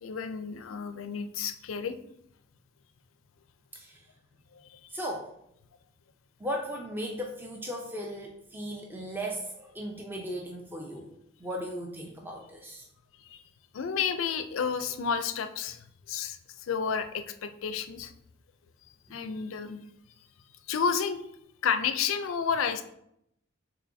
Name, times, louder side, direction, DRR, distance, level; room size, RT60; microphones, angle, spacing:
voice 1, 0.0-1.9 13.2-13.4 13.7-18.1 19.1-19.8 20.7-21.2 21.6-22.8, left 6 dB, 85° left, 10 dB, 0.4 m, -31 dB
voice 2, 3.7-4.0 4.9-5.3 6.4-12.8 19.1-19.2, equal, 10° right, -1 dB, 0.5 m, -37 dB
5.5 x 3.6 x 2.6 m, 0.76 s
head